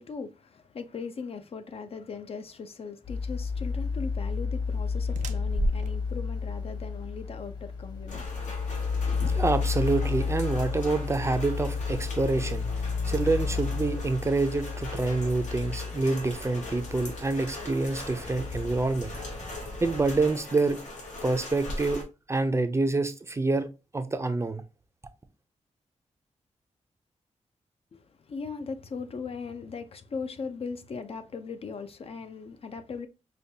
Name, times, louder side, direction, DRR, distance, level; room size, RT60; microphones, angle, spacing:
voice 1, 0.0-8.5 8.9-9.3 27.9-33.1, left 5 dB, 50° left, 0.5 m, -39 dB
sound 1, 3.0-20.3, left 5 dB, 35° left, 1.1 m, -32 dB
sound 2, 3.6-9.7, right 1 dB, 80° right, 0.5 m, -37 dB
Rain, 8.1-22.0, left 2 dB, 80° left, 1.3 m, -41 dB
voice 2, 9.3-12.7 13.0-19.1 19.8-20.8 21.2-22.0 22.3-23.7 23.9-24.6, right 3 dB, 20° right, 0.4 m, -27 dB
5.1 x 2.2 x 2.7 m
wide cardioid pair, 120°, 12 cm